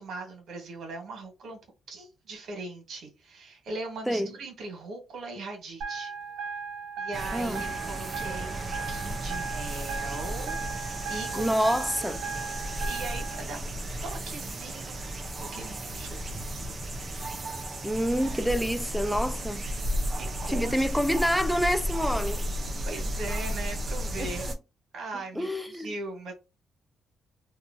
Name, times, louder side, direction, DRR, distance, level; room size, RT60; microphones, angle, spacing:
voice 1, 0.0-1.6 1.9-6.1 7.0-11.8 12.5-13.8 14.0-16.9 19.9-20.7 22.9-24.6 24.9-26.3, right 3 dB, 65° right, 1.2 m, -40 dB
sound 1, 5.8-13.4, right 5 dB, 80° right, 0.6 m, -37 dB
sound 2, 7.1-24.6, equal, 35° right, 0.6 m, -34 dB
voice 2, 7.3-7.7 11.3-12.2 17.8-19.6 20.5-22.5 24.2-24.3 25.1-25.9, equal, ahead, 0.3 m, -27 dB
2.8 x 2.3 x 2.6 m
cardioid pair, 90°, 0 cm